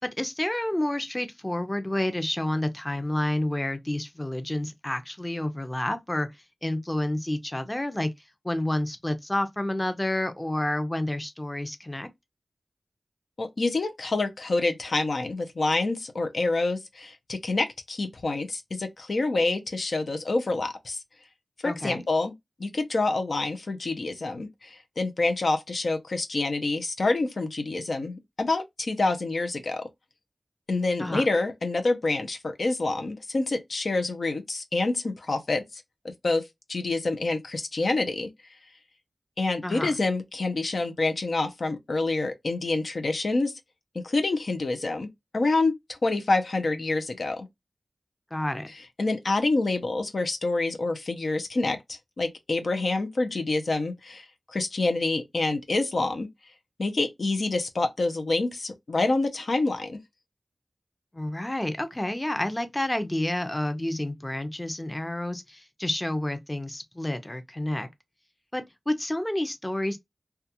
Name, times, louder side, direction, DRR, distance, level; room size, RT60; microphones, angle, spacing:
voice 1, 0.2-6.3 6.6-8.1 8.4-12.1 21.6-22.0 31.0-31.3 39.6-39.9 48.3-48.7 61.1-67.9 68.5-70.0, left 1 dB, 20° left, 0.6 m, -29 dB
voice 2, 13.4-21.0 21.6-22.3 22.6-29.8 30.7-35.8 36.2-36.4 36.7-38.3 39.4-43.5 43.9-45.1 45.3-47.5 49.0-54.3 54.5-56.3 56.8-60.0, left 2 dB, 75° left, 0.5 m, -27 dB
2.3 x 2.2 x 2.7 m
cardioid pair, 45°, 0 cm